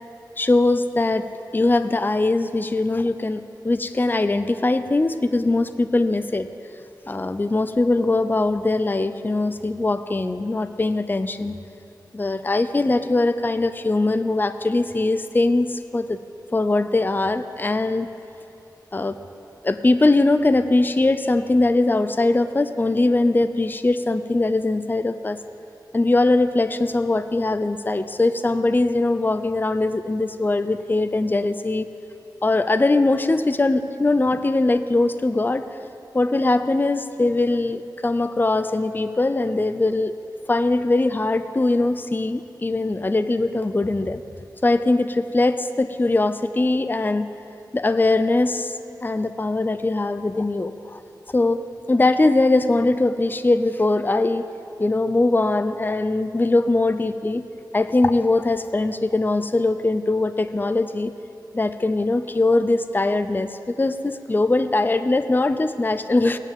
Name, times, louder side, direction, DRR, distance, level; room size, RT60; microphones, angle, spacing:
voice 1, 0.4-6.5 7.1-11.5 12.1-16.2 16.5-18.1 18.9-19.2 19.6-25.4 25.9-31.9 32.4-35.6 36.1-40.2 40.5-44.2 44.6-47.3 47.7-51.0 51.3-54.4 54.8-57.5 57.7-61.1 61.5-66.4, left 2 dB, 25° left, 11 dB, 0.6 m, -21 dB
16.5 x 10.5 x 7.5 m, 2.8 s
wide cardioid pair, 75°, 8 cm